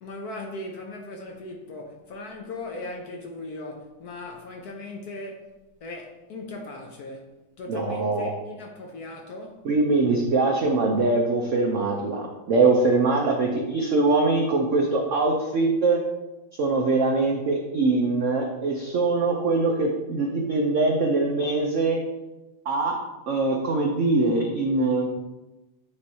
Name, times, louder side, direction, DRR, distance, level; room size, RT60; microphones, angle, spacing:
voice 1, 0.0-7.3 7.6-9.6, left 2 dB, 65° left, 1.0 m, -38 dB
voice 2, 7.7-8.3 9.6-16.0 16.6-22.0 22.7-23.0 23.3-25.1, right 3 dB, 85° right, 0.6 m, -23 dB
8.6 x 3.2 x 4.0 m
omnidirectional pair, 2.2 m